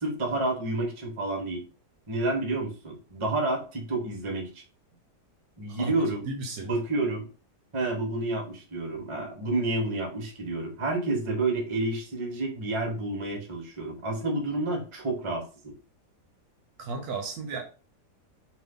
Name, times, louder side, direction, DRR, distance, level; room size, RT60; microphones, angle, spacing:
voice 1, 0.0-1.6 2.1-4.5 5.6-6.3 6.6-7.3 7.7-15.7, right 2 dB, 30° right, 0.6 m, -29 dB
voice 2, 6.3-6.7 16.8-17.7, right 3 dB, 70° right, 1.0 m, -34 dB
2.7 x 2.5 x 3.5 m
omnidirectional pair, 1.8 m